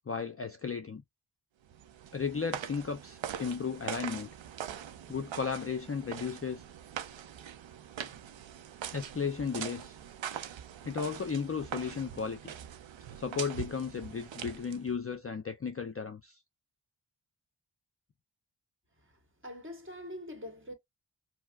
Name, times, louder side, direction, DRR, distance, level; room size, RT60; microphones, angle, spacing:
voice 1, 0.1-1.0 2.1-4.3 5.1-6.6 8.9-10.0 10.8-12.5 13.1-16.4, left 5 dB, 30° left, 0.4 m, -35 dB
sound 1, 1.7-15.0, right 9 dB, 70° right, 0.5 m, -43 dB
voice 2, 19.4-20.7, left 1 dB, 25° right, 1.4 m, -43 dB
4.5 x 2.0 x 2.3 m
wide cardioid pair, 50°, 47 cm